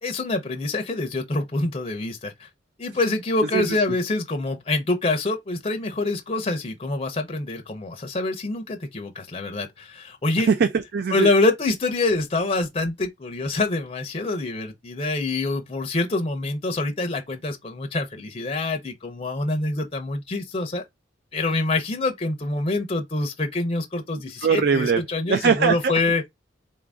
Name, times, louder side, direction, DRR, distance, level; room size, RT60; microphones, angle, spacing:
voice 1, 0.0-2.5 2.8-10.5 11.1-20.8 21.3-26.2, left 2 dB, 30° left, 0.6 m, -26 dB
voice 2, 10.4-11.3 24.4-25.0 25.3-26.0, right 6 dB, 55° right, 0.4 m, -21 dB
3.8 x 2.5 x 3.4 m
head